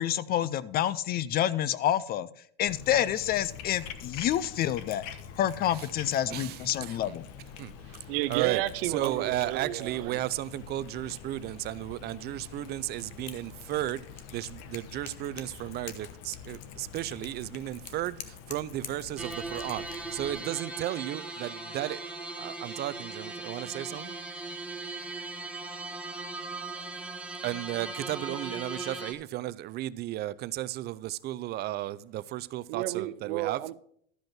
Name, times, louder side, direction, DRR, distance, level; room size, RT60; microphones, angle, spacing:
voice 1, 0.0-2.3 2.6-5.0 5.4-7.2, left 11 dB, 30° left, 0.4 m, -28 dB
Cat, 2.7-20.4, left 8 dB, 55° left, 1.1 m, -45 dB
voice 2, 6.3-7.1 7.6-7.7 8.3-14.0 14.3-22.0 22.4-24.2 27.4-33.6, right 14 dB, 35° right, 0.4 m, -34 dB
voice 3, 7.8-10.2 32.7-33.7, right 15 dB, 65° right, 0.7 m, -32 dB
sound 1, 19.2-29.1, right 3 dB, 5° right, 1.4 m, -39 dB
12.5 x 5.1 x 5.9 m
hypercardioid pair, 110°, 31 cm